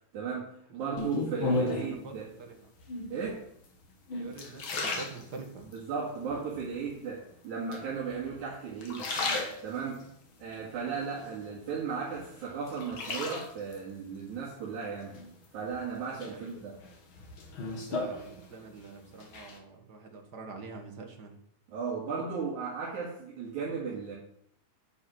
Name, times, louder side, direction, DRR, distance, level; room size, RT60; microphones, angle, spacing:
voice 1, 0.1-2.3 3.1-3.5 5.7-9.1 9.6-10.1 10.4-15.2 15.5-16.8 21.7-24.2, right 5 dB, 70° right, -5 dB, 3.5 m, -36 dB
voice 2, 0.7-1.0 1.4-1.7 2.0-2.6 4.1-5.7 10.7-10.9 16.2-16.5 17.8-21.4, right 4 dB, 40° right, 4 dB, 1.7 m, -46 dB
sound 1, 1.0-2.0 2.8-3.3 3.8-5.8 6.3-6.9 7.7-8.4 8.7-10.0 10.5-11.7 12.1-13.8 15.1-15.8 16.2-18.8 19.1-19.6, left 2 dB, 45° left, 2.2 m, -35 dB
10.5 x 7.7 x 6.3 m, 0.71 s
omnidirectional pair, 3.5 m